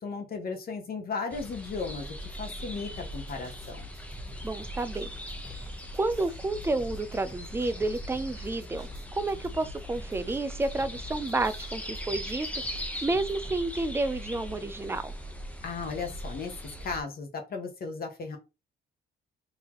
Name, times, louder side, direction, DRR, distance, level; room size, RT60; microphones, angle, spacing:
voice 1, 0.0-3.9 15.6-16.5 16.8-18.4, left 4 dB, 50° left, 1.0 m, -35 dB
sound 1, 1.3-17.0, equal, 5° left, 0.8 m, -40 dB
sound 2, 2.9-13.6, left 1 dB, 30° right, 1.6 m, -49 dB
voice 2, 4.4-5.1 5.5-5.6 5.9-12.5 13.0-15.1, right 2 dB, 10° right, 0.4 m, -30 dB
4.0 x 2.8 x 3.0 m
cardioid pair, 90°, 20 cm